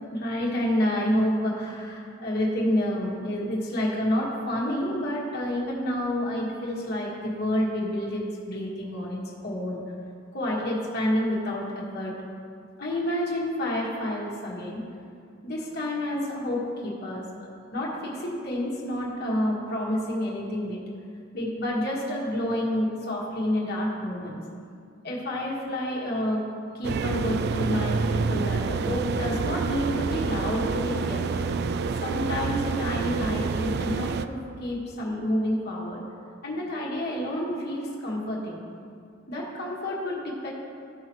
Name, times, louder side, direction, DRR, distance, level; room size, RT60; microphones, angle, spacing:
voice 1, 0.1-9.9 10.3-12.2 12.8-14.8 15.4-17.2 17.7-20.8 21.3-24.4 25.0-26.4 26.7-31.3 32.0-36.0 36.4-38.6 39.3-40.5, left 1 dB, 55° left, -4 dB, 1.6 m, -29 dB
sound 1, 26.8-34.3, right 4 dB, 55° right, 0.3 m, -28 dB
13.5 x 5.7 x 3.1 m, 2.3 s
head